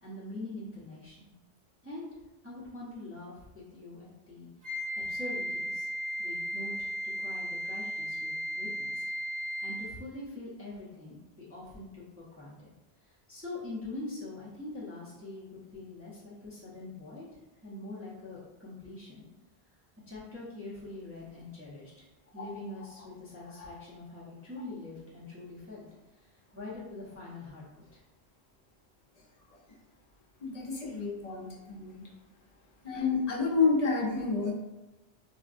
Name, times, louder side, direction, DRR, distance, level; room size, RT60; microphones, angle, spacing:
voice 1, 0.0-1.3 1.8-2.1 2.4-4.8 5.1-5.9 6.2-6.9 7.2-9.0 9.6-12.7 13.0-17.2 17.6-19.3 20.1-21.9 22.3-25.9 26.2-26.3 26.5-28.0, left 2 dB, 15° right, -9 dB, 0.8 m, -44 dB
Wind instrument woodwind instrument, 4.6-10.0, equal, 35° right, 0.3 m, -35 dB
voice 2, 30.4-32.0 32.8-34.5, left 4 dB, 45° left, -3 dB, 0.7 m, -29 dB
4.0 x 2.1 x 2.5 m, 1.1 s
omnidirectional pair, 1.1 m